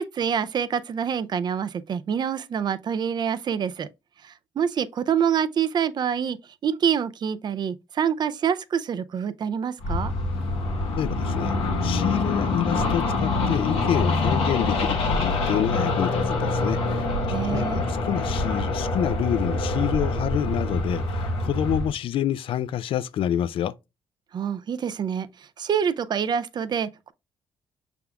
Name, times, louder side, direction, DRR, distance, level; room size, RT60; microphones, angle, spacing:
voice 1, 0.0-3.9 4.2-6.4 6.6-10.1 17.3-17.8 24.3-27.1, right 7 dB, 45° right, 0.4 m, -26 dB
sound 1, 9.8-21.9, left 2 dB, 90° left, 1.3 m, -25 dB
voice 2, 11.0-11.5 11.8-17.1 17.4-23.7, left 10 dB, 65° left, 0.4 m, -28 dB
5.8 x 3.5 x 2.2 m
cardioid pair, 80°, 10 cm